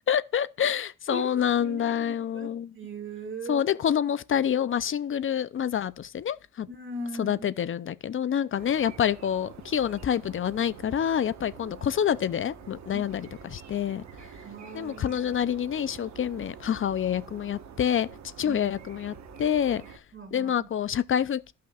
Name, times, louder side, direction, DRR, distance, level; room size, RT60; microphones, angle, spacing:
voice 1, 0.1-2.7 3.5-6.7 7.2-14.0 14.7-18.1 18.4-19.8 20.3-21.5, left 9 dB, 45° left, 0.6 m, -27 dB
voice 2, 1.1-3.6 6.7-7.5 12.9-13.1 14.4-15.4 18.4-18.7 20.1-20.7, right 2 dB, 40° right, 2.6 m, -40 dB
sound 1, 8.5-20.0, right 7 dB, 65° right, 1.3 m, -47 dB
14.5 x 5.7 x 2.4 m
cardioid pair, 90°, 30 cm